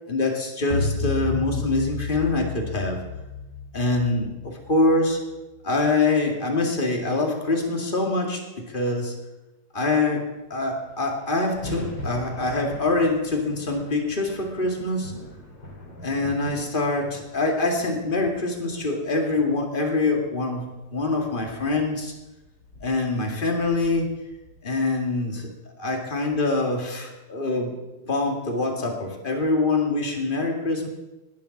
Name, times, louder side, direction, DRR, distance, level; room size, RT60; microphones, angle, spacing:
voice 1, 0.1-3.0 3.7-5.2 5.6-8.4 8.7-9.1 9.7-15.1 16.0-22.1 22.8-24.2 24.6-25.5 25.8-27.7 28.1-30.9, left 2 dB, 20° left, 1 dB, 1.9 m, -24 dB
sound 1, 0.7-5.2, left 4 dB, 30° right, 2.0 m, -31 dB
sound 2, 10.4-10.5 10.7-25.0, left 1 dB, 40° left, 3.8 m, -42 dB
19.0 x 7.1 x 7.1 m, 1.0 s
omnidirectional pair, 3.3 m